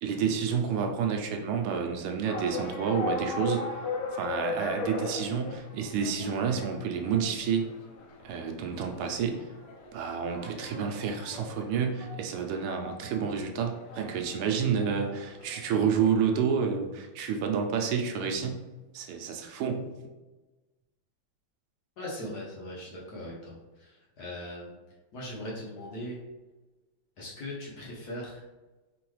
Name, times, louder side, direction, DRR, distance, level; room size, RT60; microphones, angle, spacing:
voice 1, 0.0-3.6 4.2-7.7 8.2-9.5 9.9-18.6 18.9-19.9, right 6 dB, 85° right, 3 dB, 1.6 m, -29 dB
sound 1, 2.3-16.2, left 3 dB, 80° left, 1.6 m, -39 dB
voice 2, 22.0-24.8 25.1-26.2 27.2-28.4, left 1 dB, 55° left, -4 dB, 1.4 m, -39 dB
4.2 x 3.8 x 3.1 m, 1.2 s
omnidirectional pair, 2.4 m